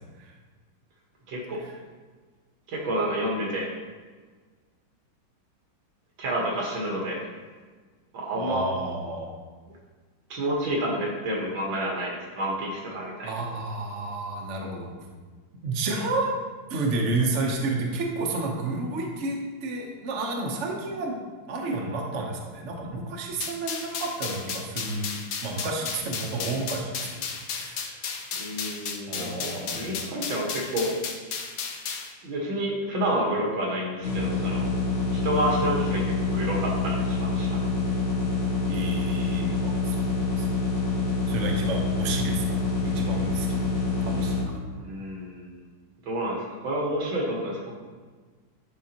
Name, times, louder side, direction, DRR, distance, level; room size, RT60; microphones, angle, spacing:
voice 1, 1.3-1.6 2.7-3.7 6.2-7.2 8.1-8.6 10.3-13.3 28.4-30.9 32.2-34.7 35.2-37.7 44.7-45.7 46.1-47.7, right 1 dB, 70° right, -2 dB, 2.1 m, -29 dB
voice 2, 8.3-9.3 13.2-14.9 15.6-16.4 16.7-21.2 21.5-25.1 25.4-28.0 29.1-30.2 38.7-40.5 41.3-42.4 42.9-43.7 44.0-44.7, right 2 dB, 50° right, 0 dB, 0.9 m, -31 dB
sound 1, 23.4-32.1, left 5 dB, 70° left, 0.8 m, -34 dB
sound 2, 34.0-44.4, left 3 dB, 35° left, 1.6 m, -26 dB
11.5 x 3.8 x 2.9 m, 1.4 s
omnidirectional pair, 2.2 m